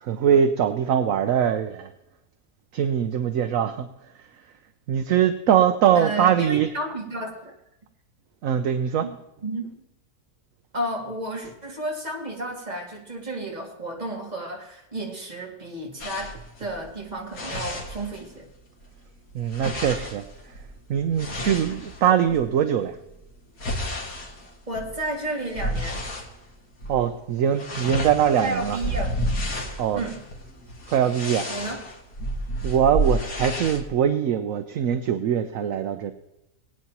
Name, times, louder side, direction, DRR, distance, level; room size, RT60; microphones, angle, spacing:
voice 1, 0.0-1.9 2.7-3.9 4.9-6.7 8.4-9.0 19.3-20.2 20.9-23.0 26.9-28.8 29.8-30.0 30.9-31.4 32.6-36.1, right 9 dB, 65° right, 8 dB, 1.0 m, -22 dB
voice 2, 5.9-7.5 9.0-9.1 9.4-9.8 10.7-18.5 21.3-21.8 24.7-26.1 28.4-29.1 29.9-30.2 31.5-31.9, right 1 dB, 25° right, -1 dB, 2.3 m, -32 dB
sound 1, 16.0-18.5 18.8-22.4 23.0-26.3 26.7-27.0 27.3-33.8, equal, 80° left, 2.4 m, -31 dB
20.0 x 9.3 x 2.9 m, 0.89 s
omnidirectional pair, 1.6 m